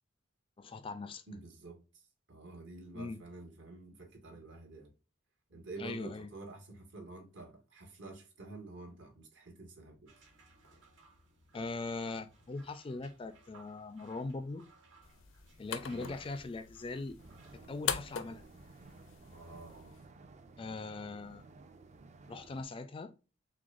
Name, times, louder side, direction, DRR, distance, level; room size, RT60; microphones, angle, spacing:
voice 1, 0.6-1.2 2.9-3.2 5.8-6.3 11.5-14.7 15.6-17.2 17.5-18.4 20.6-21.4 22.3-23.1, left 3 dB, 25° left, 0.3 m, -41 dB
voice 2, 1.3-2.0 2.3-4.9 5.5-10.1 15.9-16.2 19.2-20.0, right 3 dB, 70° right, 1.5 m, -49 dB
sound 1, 10.1-17.6, right 3 dB, 90° right, 1.9 m, -62 dB
sound 2, 15.0-20.0, left 8 dB, 80° left, 0.5 m, -42 dB
sound 3, 17.2-22.6, right 3 dB, 35° right, 0.4 m, -55 dB
6.1 x 2.2 x 2.4 m
head